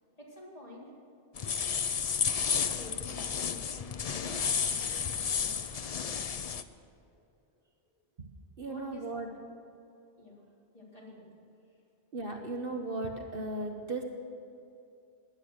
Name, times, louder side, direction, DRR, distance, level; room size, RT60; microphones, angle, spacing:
voice 1, 0.2-0.9 2.2-5.6 6.4-7.2 8.6-9.0 10.2-10.4 10.7-11.3, left 2 dB, 30° left, -5 dB, 3.7 m, -50 dB
sound 1, 1.4-6.6, left 7 dB, 50° left, 0.5 m, -32 dB
voice 2, 8.6-9.3 12.1-14.0, right 2 dB, 55° right, 3 dB, 1.3 m, -36 dB
17.5 x 10.5 x 6.4 m, 2.5 s
omnidirectional pair, 1.2 m